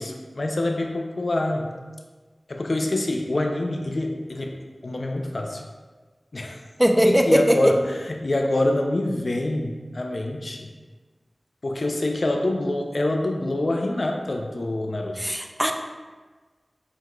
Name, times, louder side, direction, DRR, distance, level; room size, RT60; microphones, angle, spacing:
voice 1, 0.0-1.7 2.5-5.6 6.3-6.6 7.0-10.7 11.6-15.2, left 1 dB, 65° left, 2 dB, 0.4 m, -26 dB
voice 2, 6.8-7.6 15.2-15.7, equal, 10° right, 4 dB, 0.4 m, -19 dB
4.6 x 3.6 x 2.2 m, 1.4 s
wide cardioid pair, 45°, 0 cm